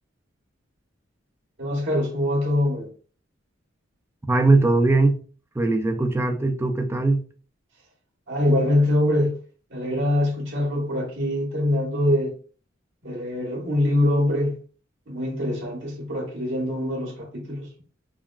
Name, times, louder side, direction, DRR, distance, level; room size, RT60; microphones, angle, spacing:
voice 1, 1.6-2.9 8.3-9.4 9.7-12.3 13.0-14.6 15.1-17.7, left 1 dB, 65° right, 1.2 m, -23 dB
voice 2, 4.3-5.2 5.6-7.2, right 2 dB, 15° right, 0.4 m, -20 dB
3.6 x 2.2 x 2.3 m
head